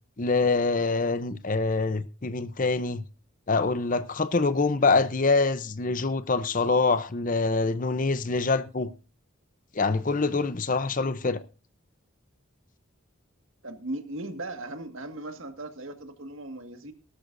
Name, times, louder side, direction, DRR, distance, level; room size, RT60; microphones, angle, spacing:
voice 1, 0.2-3.0 3.5-8.9 9.7-11.4, left 3 dB, 35° left, 0.7 m, -25 dB
voice 2, 13.6-16.9, right 2 dB, 65° right, 1.8 m, -38 dB
18.5 x 13.0 x 2.6 m
head